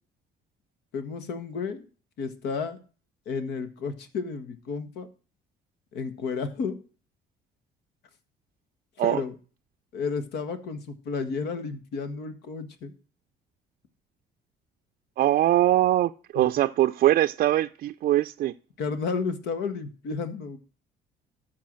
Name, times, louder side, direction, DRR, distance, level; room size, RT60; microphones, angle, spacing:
voice 1, 0.9-1.8 2.2-2.8 3.2-5.1 5.9-6.8 9.0-9.3 9.9-12.9 16.3-16.5 18.8-20.6, left 5 dB, 80° left, 1.6 m, -32 dB
voice 2, 15.2-18.5, right 14 dB, 60° right, 0.4 m, -22 dB
13.0 x 4.8 x 7.5 m
cardioid pair, 110°, 17 cm